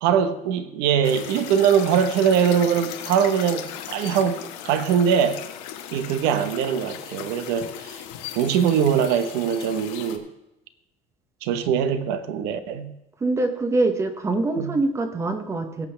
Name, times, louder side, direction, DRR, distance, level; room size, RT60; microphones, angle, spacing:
voice 1, 0.0-5.4 5.9-8.0 8.3-10.3 11.4-12.9 14.6-14.8, right 8 dB, 70° right, 1.0 m, -22 dB
sound 1, 1.0-10.2, left 10 dB, 75° left, 1.4 m, -37 dB
voice 2, 13.2-15.9, right 2 dB, 15° right, 0.8 m, -24 dB
18.0 x 8.3 x 3.3 m
cardioid pair, 170°, 18 cm